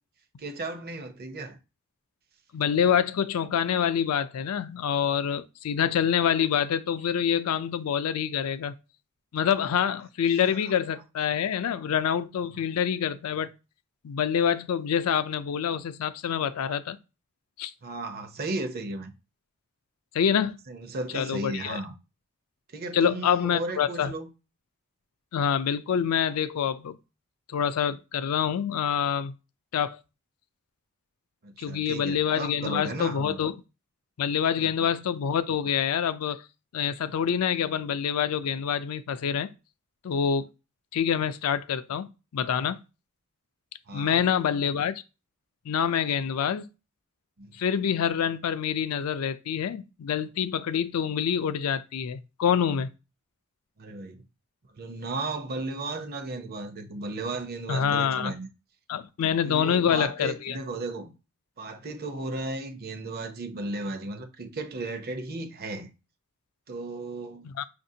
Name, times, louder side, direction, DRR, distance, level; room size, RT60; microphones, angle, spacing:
voice 1, 0.4-1.6 10.3-10.4 17.8-19.1 20.7-21.9 22.7-24.3 31.4-33.4 34.6-34.7 43.9-44.3 47.4-47.6 53.8-54.2 54.7-58.5 59.4-61.1 61.6-65.9 66.7-67.5, right 2 dB, 45° right, 0.6 m, -35 dB
voice 2, 2.5-8.8 9.3-13.5 14.0-17.0 17.6-17.7 20.1-20.6 21.1-21.8 22.9-24.1 25.3-27.0 27.5-29.3 29.7-30.0 31.6-33.5 34.2-36.4 36.7-39.5 40.0-40.5 40.9-42.8 43.9-44.9 45.7-46.6 47.6-52.9 57.7-58.3 58.9-60.6 67.4-67.6, left 8 dB, 75° left, 0.4 m, -26 dB
5.6 x 2.6 x 2.7 m
head